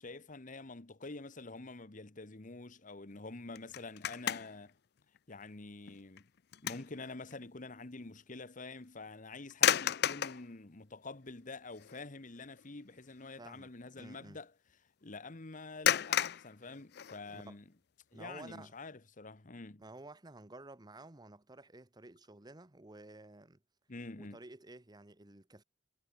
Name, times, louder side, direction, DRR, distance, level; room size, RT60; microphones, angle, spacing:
voice 1, 0.0-4.7 5.3-6.3 6.6-14.5 15.0-17.6 18.1-19.8 23.9-24.4, left 3 dB, 45° left, 1.3 m, -47 dB
sound 1, 3.6-4.7 5.2-5.3 5.9-7.0 7.3-7.4 9.5-10.5 11.3-11.4 11.8-12.1 12.4-12.6 15.8-17.5, left 10 dB, 60° left, 0.5 m, -32 dB
voice 2, 13.4-14.4 17.3-17.6 18.1-18.7 19.8-23.6 24.2-25.6, right 2 dB, 20° right, 1.1 m, -52 dB
head